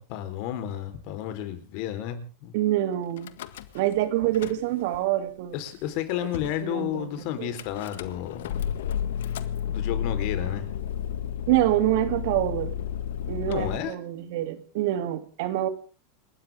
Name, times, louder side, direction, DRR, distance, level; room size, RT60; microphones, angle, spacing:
voice 1, 0.0-2.5 5.5-8.7 9.7-10.7 13.5-13.9, left 11 dB, 55° left, 9 dB, 4.3 m, -32 dB
voice 2, 2.5-3.3 3.7-5.6 6.6-7.5 11.5-12.7 13.3-15.7, right 14 dB, 60° right, 10 dB, 3.0 m, -26 dB
Car / Engine starting / Idling, 3.2-4.0 4.2-5.0 5.7-5.8 5.9-6.0 6.3-6.6 7.6-13.8, left 9 dB, 80° left, 1.7 m, -32 dB
29.0 x 13.5 x 3.7 m, 0.38 s
supercardioid pair, 145°, 0 cm